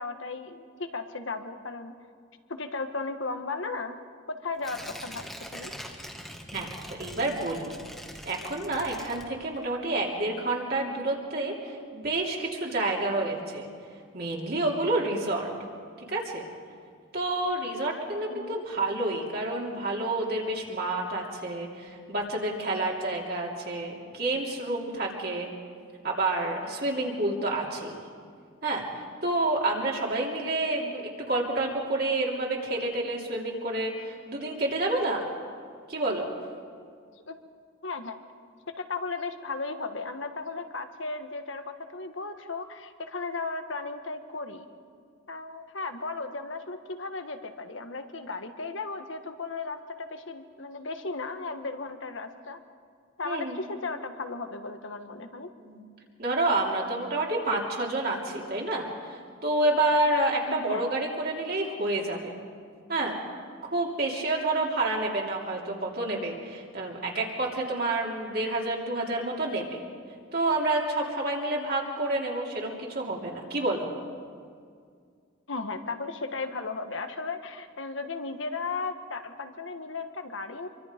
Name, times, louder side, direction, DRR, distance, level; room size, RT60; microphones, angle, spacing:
voice 1, 0.0-1.9 2.5-4.0 4.3-5.2 5.5-5.7 18.3-18.6 30.4-30.5 37.3-37.4 37.8-38.2 38.8-44.7 45.3-52.6 53.2-55.5 60.5-60.9 75.5-80.7, left 3 dB, 75° left, 8 dB, 1.4 m, -35 dB
Tearing, 4.6-9.7 10.1-10.2, equal, ahead, 1.6 m, -43 dB
voice 2, 7.0-7.7 8.2-13.7 14.1-15.5 16.1-16.5 17.1-25.5 26.0-28.0 28.6-35.2 35.9-36.3 53.2-53.6 55.6-55.8 56.2-62.3 62.9-63.2 63.7-69.8 70.3-73.9, right 2 dB, 50° right, -2 dB, 3.1 m, -29 dB
26.0 x 24.0 x 5.2 m, 2.1 s
head